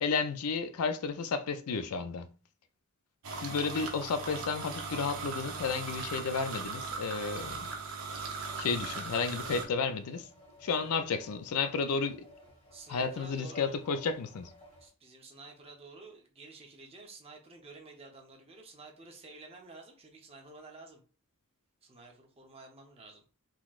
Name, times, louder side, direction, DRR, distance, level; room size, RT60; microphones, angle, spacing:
voice 1, 0.0-2.3 3.4-7.6 8.6-10.3 10.6-12.2 12.9-14.5, left 5 dB, 75° left, 0.4 m, -32 dB
sound 1, 3.2-9.6, right 4 dB, 70° right, 0.8 m, -39 dB
sound 2, 8.4-14.9, left 2 dB, 25° left, 1.5 m, -55 dB
voice 2, 10.6-10.9 12.7-13.8 14.8-21.0 21.8-23.5, right 3 dB, 25° right, 0.7 m, -51 dB
3.8 x 3.0 x 2.4 m
head